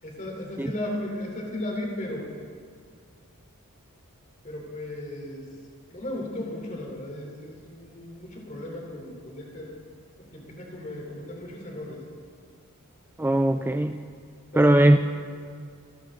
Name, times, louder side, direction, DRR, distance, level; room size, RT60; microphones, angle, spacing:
voice 1, 0.0-2.3 4.4-5.4 5.9-9.7 10.2-12.0 14.5-14.9, left 1 dB, 35° left, -1 dB, 3.7 m, -35 dB
voice 2, 13.2-14.0 14.5-15.0, right 1 dB, 10° right, 8 dB, 0.3 m, -19 dB
28.0 x 12.0 x 3.9 m, 2.1 s
head